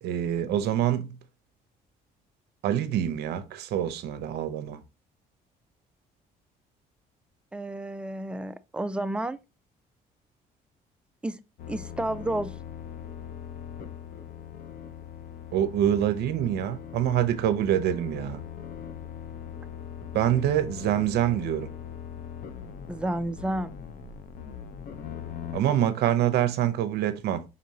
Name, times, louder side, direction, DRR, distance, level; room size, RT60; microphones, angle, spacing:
voice 1, 0.0-1.2 2.6-4.8 15.5-18.4 20.1-21.7 25.5-27.4, right 11 dB, 75° right, 0.7 m, -25 dB
voice 2, 7.5-9.4 11.2-11.4 11.7-12.5 22.9-23.8, right 1 dB, 5° right, 0.4 m, -31 dB
sound 1, 11.6-25.6, left 9 dB, 55° left, 0.7 m, -41 dB
5.1 x 3.8 x 2.7 m
cardioid pair, 110°, 17 cm